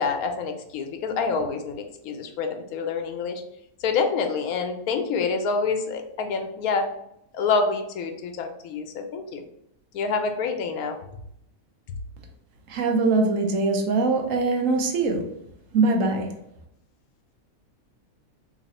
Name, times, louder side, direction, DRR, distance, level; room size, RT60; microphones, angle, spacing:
voice 1, 0.0-3.4 3.8-6.8 7.3-9.4 9.9-11.0, left 4 dB, 80° left, 6 dB, 1.0 m, -27 dB
voice 2, 12.7-15.2 15.7-16.3, right 3 dB, 70° right, 3 dB, 1.0 m, -22 dB
3.0 x 2.6 x 4.1 m, 0.76 s
omnidirectional pair, 1.5 m